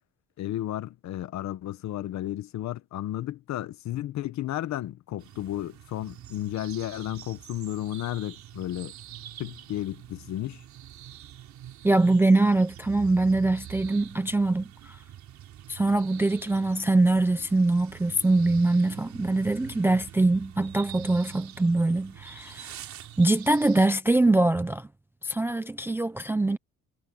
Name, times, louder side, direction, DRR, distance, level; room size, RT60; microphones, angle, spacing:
voice 1, 0.4-8.9 9.4-10.6, left 13 dB, 55° left, 1.0 m, -33 dB
sound 1, 5.2-23.9, right 11 dB, 55° right, 4.4 m, -45 dB
voice 2, 11.8-15.0 15.7-22.7 23.2-24.9 25.2-26.6, right 2 dB, 5° right, 0.4 m, -23 dB
cardioid pair, 180°, 34 cm